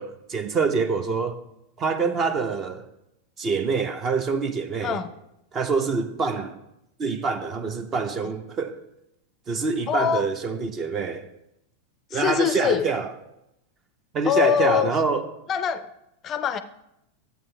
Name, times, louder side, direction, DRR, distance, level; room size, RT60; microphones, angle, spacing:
voice 1, 0.0-1.4 1.8-2.9 3.4-5.0 5.5-6.6 7.0-8.8 9.5-11.3 12.1-13.1 14.1-15.2, right 4 dB, 30° right, 0.7 m, -26 dB
voice 2, 9.9-10.3 12.1-12.9 14.2-14.9 15.5-15.9 16.2-16.6, left 9 dB, 30° left, 0.4 m, -23 dB
14.0 x 8.1 x 2.2 m
figure-of-eight pair, 90°, 0 cm